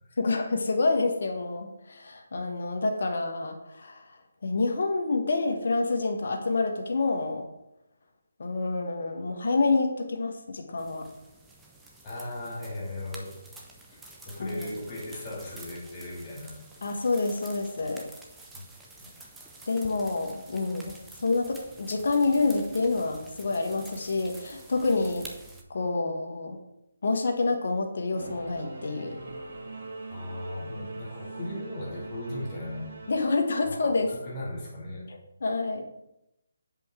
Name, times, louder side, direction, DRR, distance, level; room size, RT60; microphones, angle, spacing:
voice 1, 0.2-4.0 4.4-7.5 8.4-11.1 14.4-14.6 16.8-18.1 19.7-25.3 25.7-26.6 27.0-29.1 33.1-34.1 35.1-35.9, left 3 dB, 60° left, 4 dB, 1.3 m, -28 dB
sound 1, 10.8-25.6, right 2 dB, 5° right, 0.7 m, -49 dB
voice 2, 12.0-13.4 13.9-16.6 18.5-18.6 19.0-19.1 30.1-32.9 33.6-33.8 34.1-35.1, left 1 dB, 25° left, -3 dB, 2.2 m, -37 dB
Singing / Musical instrument, 28.1-33.2, right 2 dB, 55° right, 1.9 m, -41 dB
8.0 x 5.3 x 3.7 m, 0.86 s
figure-of-eight pair, 155°, 0 cm